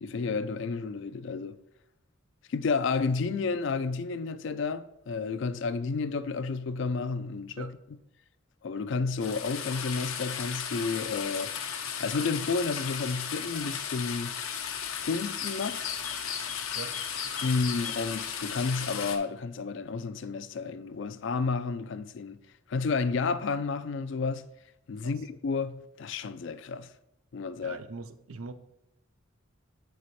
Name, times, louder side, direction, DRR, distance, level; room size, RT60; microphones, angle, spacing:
voice 1, 0.0-1.6 2.5-7.7 8.6-11.6 12.0-14.4 15.0-16.0 17.4-22.4 22.7-24.5 24.9-26.9 27.3-27.8, left 4 dB, 60° left, 0.4 m, -31 dB
sound 1, 9.2-19.2, left 7 dB, 80° left, 0.8 m, -35 dB
voice 2, 27.6-28.5, right 4 dB, 80° right, 0.5 m, -42 dB
8.5 x 4.6 x 4.1 m
head